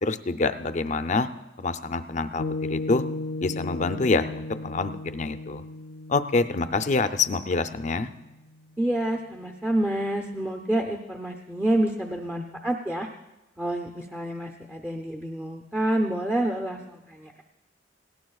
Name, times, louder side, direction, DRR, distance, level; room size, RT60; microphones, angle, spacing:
voice 1, 0.0-1.3 1.6-3.0 3.4-5.6 6.1-8.1, left 3 dB, 40° left, 10 dB, 0.5 m, -26 dB
Piano, 2.4-9.1, left 2 dB, 75° left, 0.7 m, -36 dB
voice 2, 8.8-13.1 13.6-17.4, right 1 dB, 10° right, 1 dB, 0.6 m, -28 dB
18.0 x 17.0 x 2.4 m, 1.0 s
head